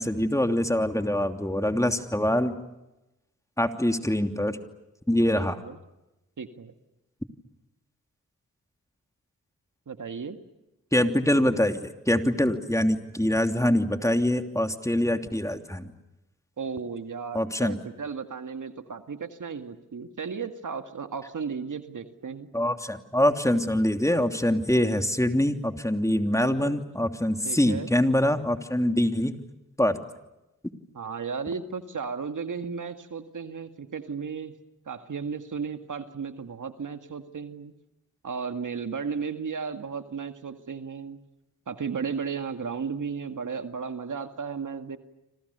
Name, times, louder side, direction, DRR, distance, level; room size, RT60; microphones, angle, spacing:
voice 1, 0.0-2.6 3.6-4.6 5.1-5.6 10.9-15.9 17.3-17.8 22.5-29.3 29.8-30.0, left 1 dB, 10° left, 6 dB, 3.0 m, -24 dB
voice 2, 5.4-5.8 6.4-6.8 9.9-10.4 16.6-22.5 26.4-26.8 27.4-27.9 30.9-34.5 34.9-37.7 38.2-41.2 41.7-45.0, right 5 dB, 60° right, 8 dB, 2.0 m, -34 dB
29.5 x 26.0 x 6.9 m, 0.96 s
cardioid pair, 45°, 34 cm